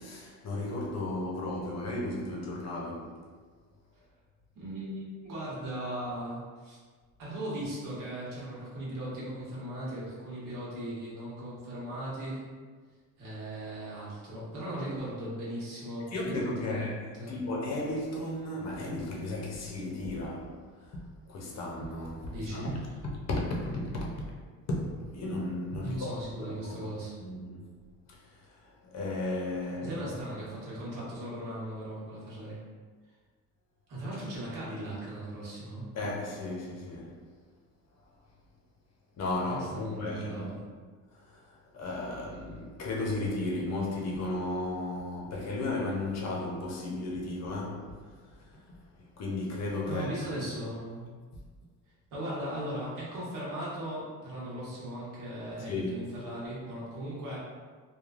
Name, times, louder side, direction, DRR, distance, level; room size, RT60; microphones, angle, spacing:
voice 1, 0.0-3.2 16.1-17.0 17.3-21.0 21.3-22.6 23.3-24.1 24.7-26.9 27.2-27.7 28.1-28.2 28.6-30.0 35.9-37.2 39.2-40.6 41.1-41.4 41.7-48.0 48.5-48.6 49.2-50.4 55.7-56.1, left 2 dB, 55° left, 0.6 m, -34 dB
voice 2, 4.5-6.8 7.2-12.4 13.2-16.9 17.2-17.4 22.3-22.9 25.8-27.2 29.8-32.6 33.9-35.8 39.5-40.6 49.8-51.1 52.1-57.4, right 1 dB, 75° right, 1.1 m, -38 dB
3.1 x 2.2 x 2.4 m
cardioid pair, 135°, 32 cm